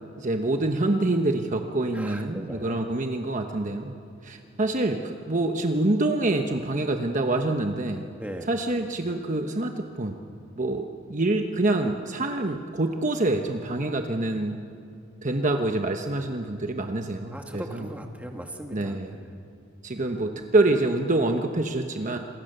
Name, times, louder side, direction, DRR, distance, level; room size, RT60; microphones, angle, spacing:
voice 1, 0.2-3.9 4.2-8.1 8.5-10.2 10.6-14.6 15.2-17.9 18.7-19.1 19.8-22.2, right 2 dB, 40° right, 4 dB, 1.1 m, -26 dB
voice 2, 1.9-2.8 8.2-8.5 17.3-19.3, right 1 dB, 5° right, 3 dB, 2.1 m, -39 dB
27.5 x 24.0 x 6.8 m, 2.5 s
head